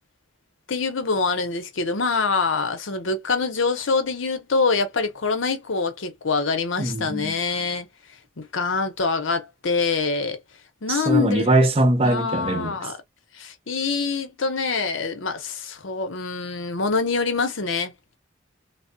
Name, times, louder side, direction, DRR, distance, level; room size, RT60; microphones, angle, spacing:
voice 1, 0.7-7.9 8.4-10.4 10.8-11.5 12.0-13.0 13.3-17.9, left 4 dB, 70° left, 0.8 m, -25 dB
voice 2, 6.8-7.3 10.9-12.8, right 1 dB, 30° right, 0.6 m, -21 dB
3.4 x 2.0 x 2.6 m
head